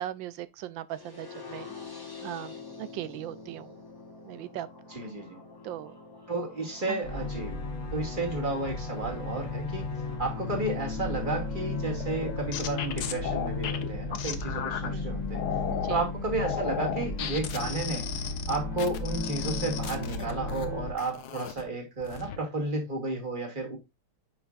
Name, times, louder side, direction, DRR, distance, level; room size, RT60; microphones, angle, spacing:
voice 1, 0.0-1.7 2.2-3.8 4.3-4.7 5.6-6.0 6.9-7.0 14.9-15.1 15.7-16.0, right 12 dB, 75° right, 1.2 m, -38 dB
sound 1, 0.9-6.9, left 4 dB, 15° left, 1.1 m, -45 dB
voice 2, 4.9-5.4 6.3-7.6 7.9-9.8 10.2-15.4 15.9-18.1 18.5-23.8, right 2 dB, 25° right, 2.1 m, -32 dB
sound 2, 7.0-20.9, left 3 dB, 40° left, 1.5 m, -34 dB
sound 3, 12.0-14.9 15.3-16.0 16.4-20.6 21.0-21.6 22.0-22.4, left 9 dB, 60° left, 1.2 m, -35 dB
8.5 x 5.7 x 2.4 m
omnidirectional pair, 2.3 m